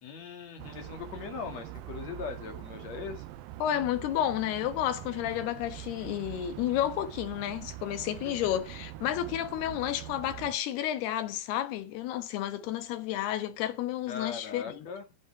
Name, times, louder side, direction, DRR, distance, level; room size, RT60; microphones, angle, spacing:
voice 1, 0.0-3.2 8.2-8.5 14.1-15.0, left 6 dB, 50° left, 2.9 m, -40 dB
sound 1, 0.6-10.6, right 15 dB, 75° right, 2.4 m, -44 dB
voice 2, 3.6-14.9, left 12 dB, 85° left, 3.3 m, -31 dB
14.5 x 5.9 x 4.8 m
omnidirectional pair, 4.5 m